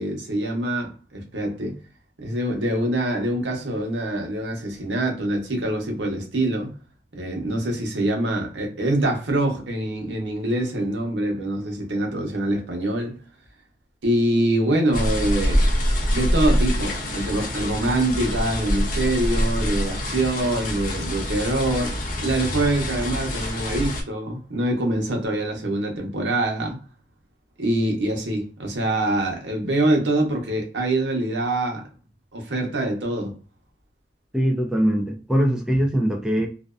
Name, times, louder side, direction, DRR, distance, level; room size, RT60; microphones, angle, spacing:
voice 1, 0.0-1.8 2.2-6.7 7.1-13.2 14.0-15.6 16.1-26.8 27.6-31.9 32.3-33.4, right 1 dB, 90° right, 0.9 m, -24 dB
sound 1, 14.9-24.0, equal, 45° left, 0.6 m, -25 dB
voice 2, 34.3-36.5, equal, 5° right, 0.4 m, -22 dB
2.6 x 2.2 x 2.3 m
head